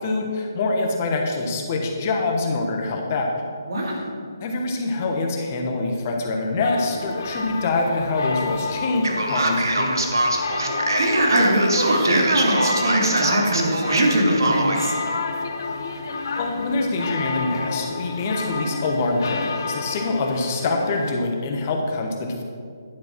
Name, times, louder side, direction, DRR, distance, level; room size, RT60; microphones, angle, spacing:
voice 1, 0.0-3.3 3.8-4.0 4.4-10.1 16.4-22.4, left 3 dB, 35° left, 2 dB, 1.2 m, -25 dB
voice 2, 3.7-4.0 11.0-14.9, right 1 dB, 60° right, -1 dB, 2.3 m, -21 dB
sound 1, 6.6-21.1, left 4 dB, 55° left, 0.9 m, -31 dB
Male speech man speaking, 9.0-14.8, right 2 dB, 75° right, 1.3 m, -23 dB
10.5 x 5.2 x 6.1 m, 2.2 s
figure-of-eight pair, 150°, 2 cm